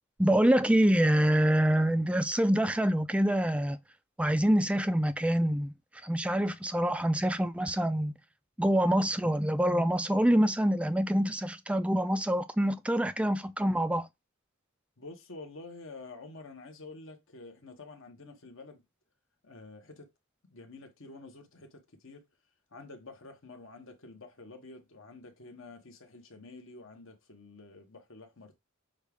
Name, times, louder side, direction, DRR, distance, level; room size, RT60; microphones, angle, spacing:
voice 1, 0.2-3.8 4.2-5.7 6.0-8.1 8.6-14.1, right 1 dB, 5° right, 0.3 m, -26 dB
voice 2, 15.0-18.8 19.4-20.1 20.5-22.2 22.7-28.6, left 3 dB, 60° left, 1.1 m, -49 dB
6.3 x 2.4 x 3.5 m
head